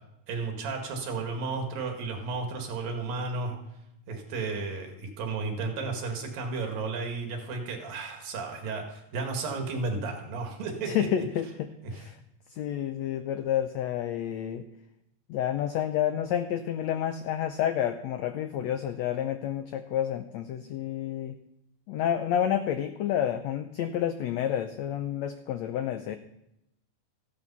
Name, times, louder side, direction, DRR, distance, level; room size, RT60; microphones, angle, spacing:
voice 1, 0.3-3.6 4.1-11.1 11.8-12.0, right 4 dB, 80° right, 3 dB, 3.7 m, -33 dB
voice 2, 10.9-12.2 12.5-14.6 15.3-21.3 21.9-26.2, left 10 dB, 90° left, 8 dB, 1.5 m, -29 dB
14.5 x 11.0 x 5.6 m, 0.83 s
omnidirectional pair, 4.0 m